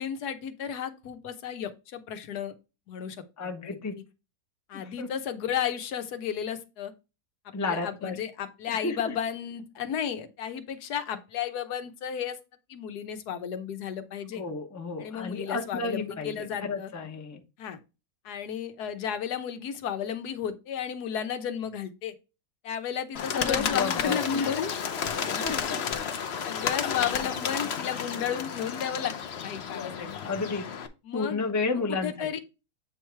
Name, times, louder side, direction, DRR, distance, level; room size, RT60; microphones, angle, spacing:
voice 1, 0.0-2.5 2.9-3.2 3.6-3.8 4.7-6.9 7.7-12.4 12.7-14.4 15.0-16.9 17.6-17.8 18.2-22.1 22.6-24.7 25.2-25.6 26.4-29.1 29.4-30.1 31.0-31.5 32.0-32.4, left 8 dB, 85° left, 1.4 m, -33 dB
voice 2, 3.4-3.9 4.7-5.1 7.5-8.2 8.7-9.1 14.3-17.4 23.3-24.5 25.4-25.5 29.7-30.7 31.1-32.4, left 4 dB, 15° left, 0.7 m, -32 dB
Bird, 23.1-30.9, left 7 dB, 55° left, 0.8 m, -32 dB
8.1 x 3.1 x 4.5 m
omnidirectional pair, 1.7 m